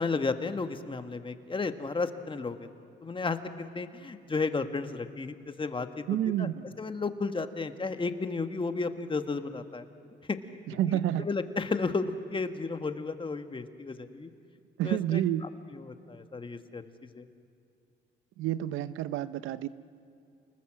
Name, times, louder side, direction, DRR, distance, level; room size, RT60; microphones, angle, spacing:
voice 1, 0.0-2.7 3.0-6.0 6.4-6.5 6.8-9.8 10.3-10.4 11.2-14.3 14.8-15.2 15.7-16.8 17.1-17.2, left 4 dB, 25° left, 8 dB, 1.5 m, -33 dB
voice 2, 6.1-6.8 10.7-11.3 14.8-15.4 18.4-19.7, right 12 dB, 90° right, 15 dB, 0.7 m, -29 dB
29.0 x 20.0 x 7.6 m, 2.4 s
cardioid pair, 90°, 20 cm